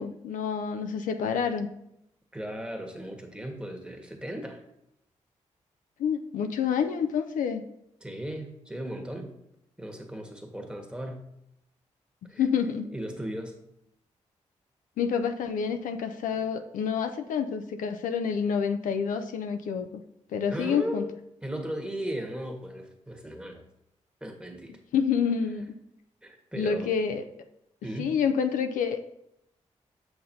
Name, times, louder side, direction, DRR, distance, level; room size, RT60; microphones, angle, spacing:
voice 1, 0.0-1.7 6.0-7.6 12.4-12.9 15.0-20.0 20.3-21.0 24.9-25.6 26.5-27.3 28.0-29.0, left 7 dB, 80° left, 7 dB, 0.4 m, -28 dB
voice 2, 2.3-4.6 8.0-9.3 9.8-11.3 12.3-12.4 12.9-13.5 20.5-21.1 21.4-23.6 24.2-24.7 26.2-26.9 27.8-28.2, right 1 dB, 5° right, 3 dB, 1.3 m, -36 dB
6.4 x 5.9 x 2.7 m, 0.80 s
supercardioid pair, 45°, 13 cm